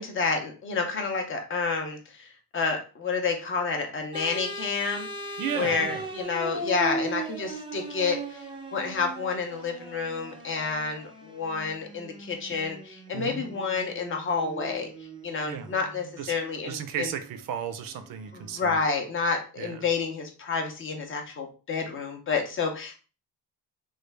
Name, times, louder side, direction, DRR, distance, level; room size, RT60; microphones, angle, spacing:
voice 1, 0.0-2.3 2.5-8.5 8.7-14.9 15.2-17.1 18.6-23.0, left 4 dB, 35° left, 3 dB, 0.5 m, -29 dB
sound 1, 4.1-18.7, right 2 dB, 15° right, 0.4 m, -39 dB
voice 2, 5.4-6.1 13.1-13.4 15.4-15.7 16.2-16.4 16.7-18.8 19.6-19.9, right 8 dB, 65° right, 9 dB, 0.5 m, -34 dB
3.2 x 2.2 x 3.2 m, 0.35 s
cardioid pair, 175°, 36 cm